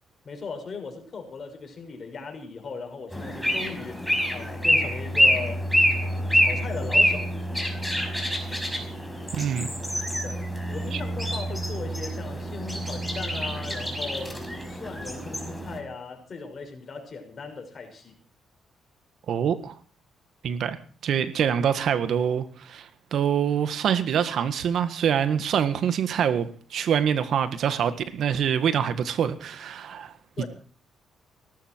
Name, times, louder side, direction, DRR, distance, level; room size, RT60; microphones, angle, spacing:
voice 1, 0.2-5.7 6.0-7.3 10.2-18.2 30.4-30.5, left 4 dB, 45° left, 5 dB, 6.0 m, -38 dB
sound 1, 3.1-15.8, equal, ahead, 5.5 m, -26 dB
voice 2, 9.3-9.7 10.9-11.0 19.3-19.8 20.4-20.8 21.0-30.1, right 8 dB, 65° right, 11 dB, 1.8 m, -25 dB
18.5 x 14.0 x 4.6 m, 0.42 s
cardioid pair, 90°, 0 cm